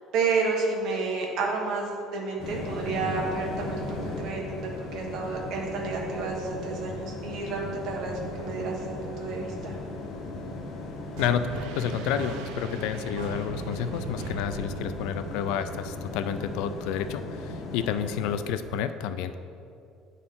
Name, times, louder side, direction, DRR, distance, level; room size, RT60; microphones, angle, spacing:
voice 1, 0.1-9.7, right 4 dB, 50° right, -1 dB, 1.2 m, -30 dB
sound 1, 2.4-18.4, left 2 dB, 50° left, 1.0 m, -37 dB
voice 2, 11.2-19.3, left 8 dB, 80° left, 11 dB, 0.3 m, -30 dB
sound 2, 11.2-15.5, right 5 dB, 90° right, 0.5 m, -40 dB
9.7 x 4.1 x 3.7 m, 2.5 s
cardioid pair, 165°, 0 cm